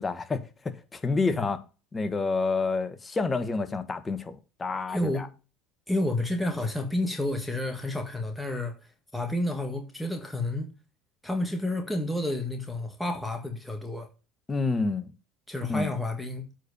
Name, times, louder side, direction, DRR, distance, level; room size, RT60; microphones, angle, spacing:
voice 1, 0.0-1.6 1.9-5.3 14.5-15.1 15.7-15.9, left 3 dB, 20° left, 1.4 m, -29 dB
voice 2, 4.9-5.3 5.9-8.7 9.1-10.7 11.2-14.1 15.5-16.5, left 1 dB, 5° left, 1.8 m, -30 dB
8.3 x 4.5 x 6.6 m
supercardioid pair, 95°, 0 cm